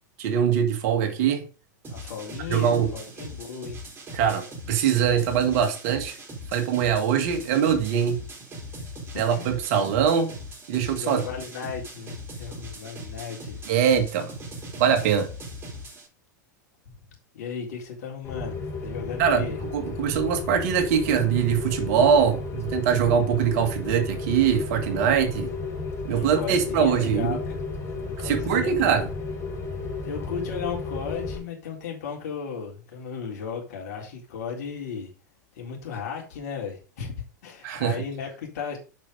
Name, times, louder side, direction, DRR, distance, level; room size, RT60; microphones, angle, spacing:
voice 1, 0.2-1.5 2.5-2.9 4.1-6.1 6.5-8.2 9.2-10.3 10.7-11.2 13.7-14.3 14.8-15.3 19.2-19.4 19.7-25.5 26.0-27.4 28.2-29.1 37.6-38.0, right 8 dB, 55° right, 2.0 m, -22 dB
sound 1, 1.8-16.1, equal, 20° right, 4.2 m, -40 dB
voice 2, 1.9-3.9 9.1-9.6 10.9-13.6 16.9-17.0 17.3-19.6 26.1-27.6 28.0-29.0 30.0-35.1 35.5-37.1 37.4-38.8, left 6 dB, 60° left, 3.8 m, -35 dB
Rain, 18.2-31.4, left 3 dB, 25° left, 4.5 m, -33 dB
7.2 x 6.0 x 5.2 m
figure-of-eight pair, 95°, 10 cm